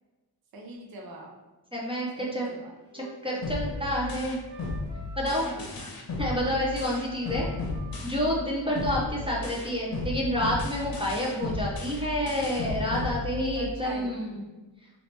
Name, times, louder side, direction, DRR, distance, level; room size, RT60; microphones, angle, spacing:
voice 1, 0.5-1.3 2.2-2.7 5.4-5.9 8.6-8.8 13.5-14.1, right 2 dB, 60° right, 0 dB, 0.6 m, -43 dB
voice 2, 1.7-2.5 2.9-4.4 5.2-5.4 6.2-7.5 8.0-14.4, equal, 15° right, -4 dB, 0.5 m, -29 dB
Wind instrument woodwind instrument, 2.9-6.0 6.3-9.8, right 1 dB, 75° right, 1.2 m, -47 dB
sound 1, 3.4-8.5 8.8-13.8, left 3 dB, 60° left, 0.7 m, -34 dB
2.9 x 2.8 x 3.2 m, 1.2 s
wide cardioid pair, 145°, 41 cm